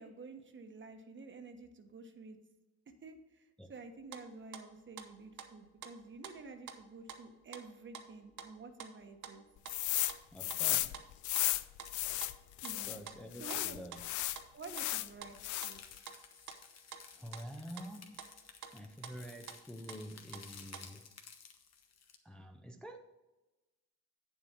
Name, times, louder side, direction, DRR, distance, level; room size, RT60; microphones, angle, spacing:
voice 1, 0.0-2.4 3.0-9.4 12.6-13.0 13.4-13.8 14.5-15.8, right 3 dB, 40° right, 1.2 m, -50 dB
sound 1, 3.7-4.2 4.5-6.8 7.1-9.4 9.6-10.2 10.5-10.6 10.9-11.1 11.3-11.9 12.2-12.8 13.1-13.2 13.5-13.6 13.9-14.0 14.3-14.9 15.2-15.3 15.6-16.6 16.9-17.0 17.3-17.9 18.2-18.8 19.0-19.2 19.5-19.6 19.9-20.8, right 7 dB, 70° right, 1.0 m, -49 dB
sound 2, 9.7-10.1 10.4-13.0 13.4-15.1 15.4-15.9, left 15 dB, 75° left, 0.5 m, -34 dB
voice 2, 10.3-11.1 12.9-14.1 17.1-18.2 18.7-21.2 22.2-23.0, equal, 5° left, 0.6 m, -48 dB
sound 3, 15.2-22.2, left 6 dB, 60° left, 1.2 m, -56 dB
8.7 x 7.4 x 4.4 m
cardioid pair, 90°, 30 cm